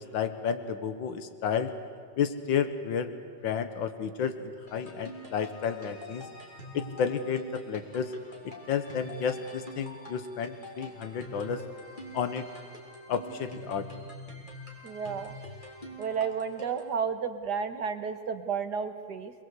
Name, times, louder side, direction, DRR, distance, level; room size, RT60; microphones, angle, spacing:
voice 1, 0.0-1.7 2.2-3.1 3.4-6.2 6.7-8.1 8.7-11.6 12.1-12.5 13.1-13.9, left 7 dB, 90° left, 10 dB, 1.9 m, -31 dB
sound 1, 4.7-17.0, equal, 25° left, 3.7 m, -46 dB
voice 2, 14.8-15.3 16.0-19.3, right 6 dB, 65° right, 9 dB, 1.9 m, -32 dB
26.5 x 20.5 x 8.3 m, 2.1 s
omnidirectional pair, 2.0 m